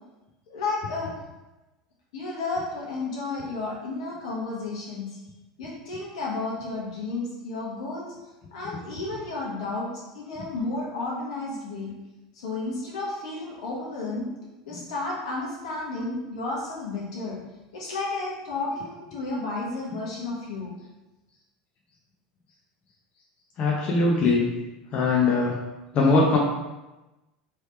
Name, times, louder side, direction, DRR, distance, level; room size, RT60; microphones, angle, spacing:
voice 1, 0.5-1.2 2.1-5.2 5.6-8.1 8.5-11.9 12.3-14.3 14.6-17.4 17.7-20.7, left 3 dB, 80° left, -4 dB, 1.2 m, -32 dB
voice 2, 23.6-24.5 24.9-25.6 25.9-26.4, left 3 dB, 45° left, -3 dB, 0.7 m, -21 dB
3.2 x 3.1 x 3.3 m, 1.1 s
hypercardioid pair, 90°, 3 cm